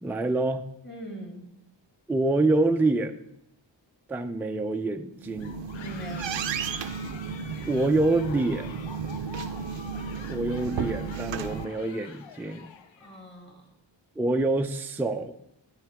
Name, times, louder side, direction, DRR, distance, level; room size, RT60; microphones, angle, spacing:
voice 1, 0.0-0.7 2.1-3.3 4.1-5.5 7.7-8.7 10.2-12.7 14.2-15.3, right 2 dB, 5° right, 6 dB, 0.4 m, -26 dB
voice 2, 0.8-1.5 5.8-6.5 13.0-13.7, equal, 25° left, 1 dB, 2.3 m, -41 dB
sound 1, 5.1-11.6, right 6 dB, 80° right, 0.6 m, -34 dB
sound 2, 5.4-13.2, left 6 dB, 80° left, 0.8 m, -46 dB
10.0 x 9.3 x 3.5 m, 0.82 s
wide cardioid pair, 95°, 44 cm